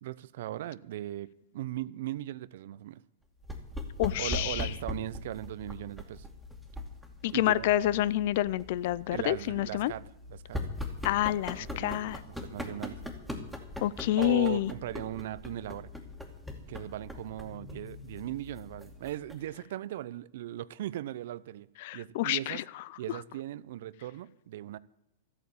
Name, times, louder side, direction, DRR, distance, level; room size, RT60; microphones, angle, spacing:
voice 1, 0.0-3.0 4.2-6.3 7.3-7.7 9.1-10.0 10.3-10.6 11.6-13.0 14.2-15.9 16.7-21.7 21.9-22.6 23.0-24.8, right 13 dB, 65° right, 0.6 m, -38 dB
sound 1, 3.4-19.6, left 2 dB, ahead, 2.4 m, -41 dB
voice 2, 4.0-4.7 7.2-9.9 11.0-12.2 13.8-14.7 21.8-22.6, left 14 dB, 60° left, 0.5 m, -28 dB
13.0 x 8.9 x 8.5 m
hypercardioid pair, 120°, 0 cm